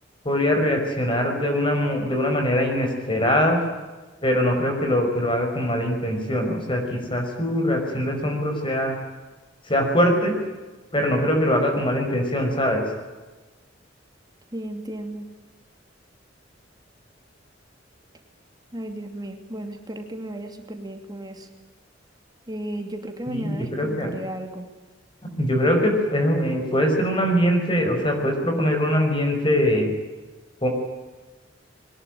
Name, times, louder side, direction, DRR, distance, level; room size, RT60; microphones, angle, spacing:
voice 1, 0.2-3.6 4.2-9.0 9.7-10.3 10.9-12.8 23.3-24.1 25.4-29.9 30.6-30.7, equal, 25° left, 4 dB, 5.4 m, -22 dB
voice 2, 14.5-15.3 18.7-21.5 22.5-24.7, right 1 dB, 20° right, 5 dB, 2.6 m, -34 dB
22.5 x 20.5 x 9.2 m, 1.2 s
head